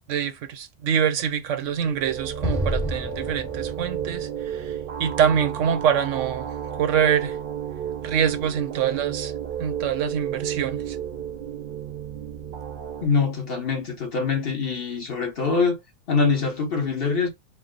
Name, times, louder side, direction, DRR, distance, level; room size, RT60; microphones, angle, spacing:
voice 1, 0.0-4.7 5.0-6.5 6.8-7.4 8.0-9.3 9.6-11.0, right 8 dB, 85° right, 1.0 m, -25 dB
sound 1, 1.5-13.1, right 9 dB, 60° right, 0.7 m, -32 dB
Explosion, 2.4-5.7, equal, 5° left, 0.5 m, -31 dB
voice 2, 13.0-15.8 16.1-17.3, left 4 dB, 55° left, 1.2 m, -24 dB
4.4 x 2.0 x 3.8 m
omnidirectional pair, 1.2 m